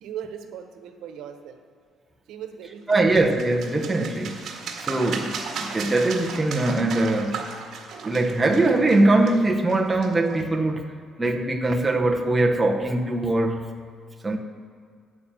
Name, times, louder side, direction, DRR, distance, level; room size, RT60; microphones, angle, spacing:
voice 1, 0.0-1.6 2.3-3.1, right 9 dB, 75° right, 1.2 m, -38 dB
voice 2, 2.9-4.5 4.8-7.5 8.0-10.8 11.2-13.8 14.2-14.4, right 2 dB, 10° right, 0.9 m, -22 dB
sound 1, 2.9-10.4, right 5 dB, 50° right, 1.8 m, -36 dB
9.5 x 8.9 x 7.5 m
cardioid pair, 150°, 0 cm